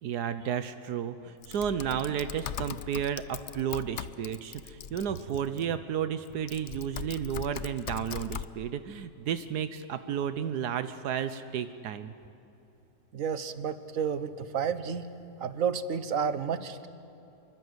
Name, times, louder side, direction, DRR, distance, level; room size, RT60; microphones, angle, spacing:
voice 1, 0.0-12.1, right 8 dB, 85° right, 11 dB, 1.4 m, -32 dB
Typing, 1.4-5.6 6.3-8.5, left 8 dB, 55° left, 0.9 m, -40 dB
voice 2, 13.1-15.0 15.4-16.9, right 7 dB, 60° right, 12 dB, 1.4 m, -31 dB
27.0 x 23.5 x 8.1 m, 2.9 s
omnidirectional pair, 1.7 m